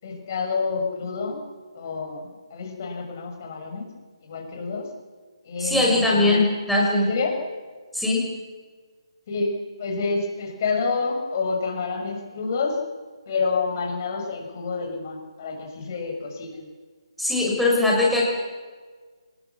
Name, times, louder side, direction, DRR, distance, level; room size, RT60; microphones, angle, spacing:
voice 1, 0.0-1.4 1.7-3.9 4.2-4.9 5.4-6.5 7.0-7.3 9.3-12.8 13.3-16.7, left 4 dB, 35° left, 2 dB, 6.3 m, -28 dB
voice 2, 5.6-7.1 7.9-8.3 17.2-18.3, left 2 dB, ahead, -4 dB, 5.9 m, -20 dB
27.0 x 20.5 x 7.2 m, 1.5 s
figure-of-eight pair, 145°, 3 cm